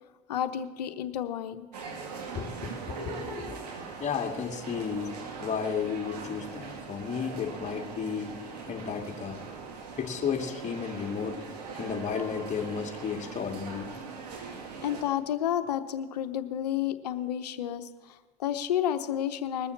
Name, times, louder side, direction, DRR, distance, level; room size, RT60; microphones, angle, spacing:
voice 1, 0.3-1.7 14.8-19.7, left 10 dB, 85° left, 9 dB, 0.9 m, -31 dB
sound 1, 1.7-15.0, right 5 dB, 85° right, 2.1 m, -41 dB
voice 2, 2.3-3.5 4.0-8.4 8.7-9.4 10.0-11.4 11.7-13.9, left 6 dB, 35° left, 2 dB, 2.4 m, -33 dB
20.5 x 7.0 x 7.2 m, 1.3 s
hypercardioid pair, 75°, 20 cm